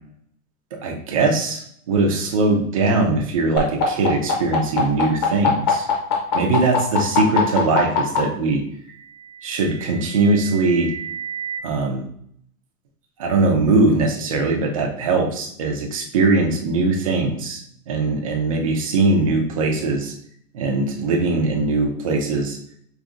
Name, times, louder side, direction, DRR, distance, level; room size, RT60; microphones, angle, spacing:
voice 1, 0.8-5.9 6.3-8.6 9.4-10.9 11.6-12.1 13.2-17.6 17.9-20.1 20.5-22.6, right 3 dB, 25° right, 1 dB, 0.4 m, -20 dB
sound 1, 3.6-8.2 9.3-11.6, left 6 dB, 25° left, 0.8 m, -25 dB
5.0 x 2.5 x 2.5 m, 0.66 s
hypercardioid pair, 145°, 44 cm